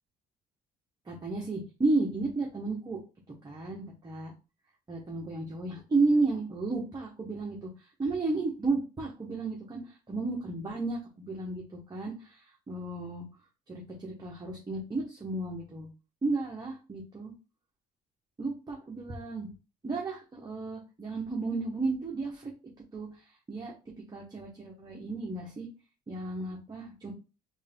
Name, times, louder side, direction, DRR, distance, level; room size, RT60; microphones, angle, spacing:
voice 1, 1.1-3.0 3.4-4.3 4.9-7.7 8.0-12.4 12.7-13.2 13.7-15.9 16.2-17.3 18.4-19.5 19.8-22.5 22.9-23.1 23.5-23.7 24.1-25.7 26.1-27.1, right 3 dB, 25° right, -3 dB, 1.2 m, -32 dB
3.6 x 2.7 x 3.6 m, 0.30 s
cardioid pair, 110°, 17 cm